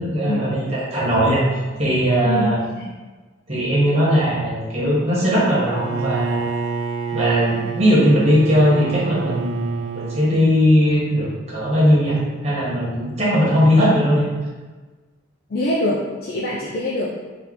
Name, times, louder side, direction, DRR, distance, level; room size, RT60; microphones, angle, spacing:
voice 1, 0.0-2.6 3.5-6.4 7.1-14.3, equal, 30° right, -7 dB, 1.4 m, -19 dB
voice 2, 2.2-2.9 15.5-17.1, left 1 dB, 50° left, -5 dB, 0.5 m, -24 dB
Bowed string instrument, 5.6-10.4, right 6 dB, 75° right, 0.3 m, -28 dB
4.4 x 2.7 x 3.7 m, 1.3 s
head